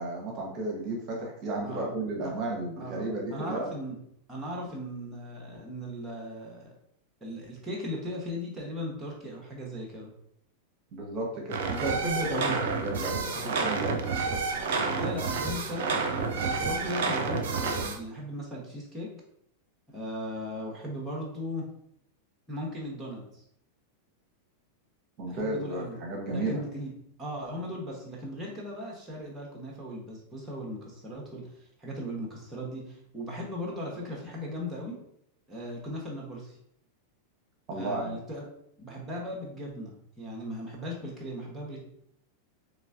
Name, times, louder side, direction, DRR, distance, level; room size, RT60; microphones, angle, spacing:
voice 1, 0.0-3.7 10.9-12.4 12.8-14.0 25.2-26.6 37.7-38.2, right 2 dB, 35° right, 0 dB, 1.1 m, -33 dB
voice 2, 1.6-1.9 2.2-2.3 2.8-4.0 4.3-6.7 7.2-10.1 12.3-12.6 14.7-19.1 19.9-21.7 22.5-23.4 25.3-26.0 26.3-26.9 27.2-35.0 35.5-36.6 37.7-38.5 38.8-41.8, equal, 10° right, -2 dB, 1.1 m, -38 dB
sound 1, 11.5-18.0, right 4 dB, 55° right, 0.6 m, -29 dB
4.5 x 3.1 x 2.6 m, 0.71 s
figure-of-eight pair, 90°, 0 cm